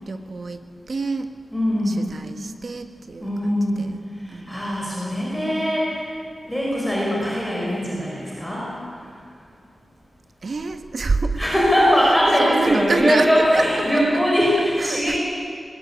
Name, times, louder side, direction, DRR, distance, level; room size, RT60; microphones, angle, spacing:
voice 1, 0.1-0.6 0.9-1.3 1.9-4.0 4.3-4.6 5.4-5.7 10.4-11.4 12.0-12.1 12.4-13.6 14.8-15.2, right 3 dB, 55° right, 8 dB, 1.4 m, -26 dB
voice 2, 1.5-2.0 3.2-3.9 4.2-6.0 6.5-8.7 9.0-9.1 11.4-15.2, equal, ahead, -5 dB, 5.1 m, -21 dB
20.5 x 20.5 x 8.7 m, 2.4 s
wide cardioid pair, 140°, 0 cm